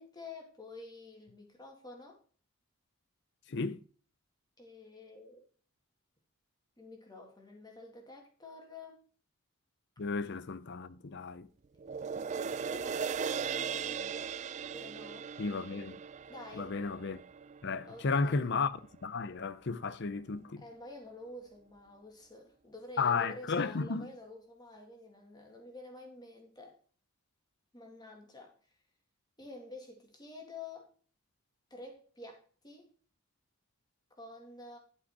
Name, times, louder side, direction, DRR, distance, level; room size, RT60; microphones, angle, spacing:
voice 1, 0.0-2.2 4.6-5.4 6.8-9.0 12.6-14.4 14.7-15.3 15.6-15.7 16.3-16.8 17.8-18.5 20.6-26.8 27.7-28.5 29.4-30.9 31.7-32.9 34.1-34.8, left 2 dB, 20° left, 2.3 m, -49 dB
voice 2, 3.5-3.8 10.0-11.5 15.4-16.0 16.5-17.2 17.6-18.7 19.0-20.6 23.0-24.1, left 4 dB, 55° left, 0.6 m, -33 dB
sound 1, 11.8-18.4 18.8-18.9, right 6 dB, 35° right, 0.4 m, -38 dB
11.5 x 5.5 x 4.8 m
head